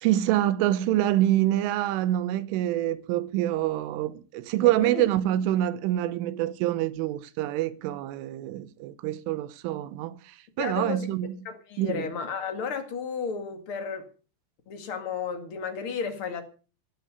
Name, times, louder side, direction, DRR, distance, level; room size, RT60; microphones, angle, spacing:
voice 1, 0.0-11.4 11.8-12.1, right 13 dB, 85° right, 3.5 m, -26 dB
voice 2, 10.6-11.1 11.5-14.0 14.7-16.4, left 6 dB, 50° left, 1.7 m, -33 dB
18.0 x 8.9 x 6.7 m
omnidirectional pair, 5.6 m